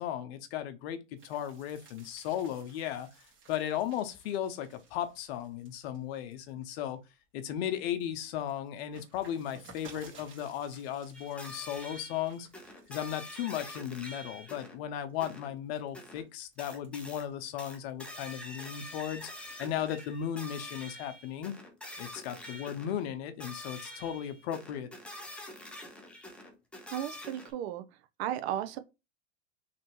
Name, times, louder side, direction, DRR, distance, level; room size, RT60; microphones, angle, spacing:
voice 1, 0.0-3.1 3.5-7.0 7.3-12.5 12.9-19.3 19.6-21.5 22.0-24.9, left 10 dB, 55° left, 0.8 m, -36 dB
sound 1, 1.2-7.1 7.5-13.4 13.7-14.2 14.8-18.1 18.5-20.1, right 4 dB, 30° right, 1.7 m, -58 dB
sound 2, 11.1-14.8 15.2-15.5 15.9-16.3 16.6-17.2 17.6-23.0 23.4-27.5, left 1 dB, 5° left, 0.6 m, -46 dB
voice 2, 26.9-27.8 28.2-28.8, right 11 dB, 55° right, 0.6 m, -34 dB
3.2 x 2.9 x 2.9 m
hypercardioid pair, 110°, 39 cm